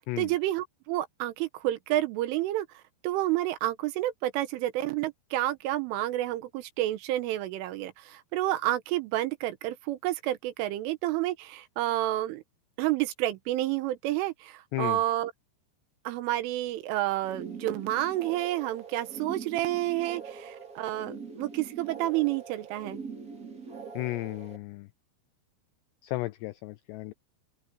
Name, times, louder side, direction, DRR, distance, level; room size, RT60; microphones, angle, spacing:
voice 1, 0.2-2.7 3.0-12.4 12.8-15.3 16.1-23.0, right 15 dB, 90° right, 3.7 m, -30 dB
sound 1, 17.2-24.6, right 5 dB, 25° right, 2.5 m, -43 dB
voice 2, 23.9-24.9 26.0-27.1, left 18 dB, 85° left, 2.4 m, -34 dB
open air
omnidirectional pair, 5.6 m